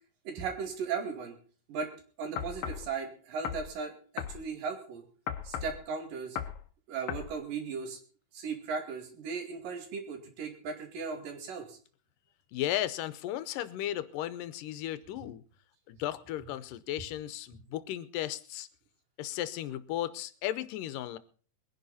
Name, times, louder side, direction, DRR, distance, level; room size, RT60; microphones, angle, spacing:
voice 1, 0.3-1.3 1.7-1.9 2.2-5.0 5.4-6.4 6.9-8.0 8.3-11.8, right 5 dB, 85° right, 5 dB, 4.0 m, -37 dB
sound 1, 2.4-2.9 3.4-3.7 4.2-4.4 5.3-5.8 6.4-6.6 7.1-7.3, left 9 dB, 65° left, 2.1 m, -36 dB
voice 2, 12.5-15.4 15.9-18.7 19.2-21.2, left 13 dB, 85° left, 15 dB, 2.4 m, -35 dB
21.5 x 10.5 x 4.2 m, 0.41 s
omnidirectional pair, 3.8 m